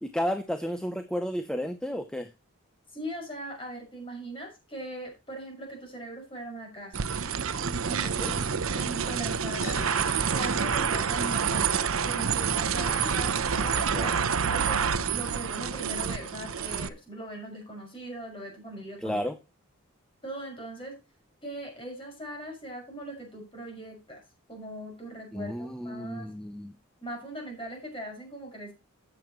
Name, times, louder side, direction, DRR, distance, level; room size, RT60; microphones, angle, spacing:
voice 1, 0.0-2.3 8.2-8.3 10.8-10.9 13.7-14.2 19.0-19.4 25.3-26.7, equal, 5° left, 8 dB, 0.7 m, -32 dB
voice 2, 2.9-7.1 7.8-8.4 8.7-9.8 10.2-14.8 15.1-19.2 20.2-20.9 21.4-24.2 24.5-26.3 27.0-28.7, right 1 dB, 25° left, 1 dB, 6.1 m, -40 dB
sound 1, 6.9-16.9, right 6 dB, 70° right, 0.8 m, -28 dB
sound 2, 9.6-11.7, left 2 dB, 40° left, 5.8 m, -46 dB
13.0 x 8.8 x 3.1 m, 0.28 s
head